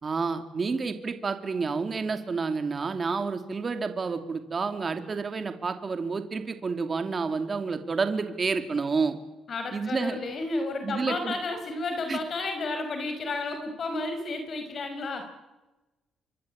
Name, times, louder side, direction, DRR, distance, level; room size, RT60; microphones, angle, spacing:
voice 1, 0.0-9.2 9.7-10.2 10.8-11.4 12.1-12.2, right 4 dB, 35° right, 7 dB, 2.6 m, -29 dB
voice 2, 9.5-15.2, left 3 dB, 50° left, 6 dB, 5.3 m, -32 dB
27.0 x 23.5 x 8.7 m, 1.1 s
cardioid pair, 90°, 0 cm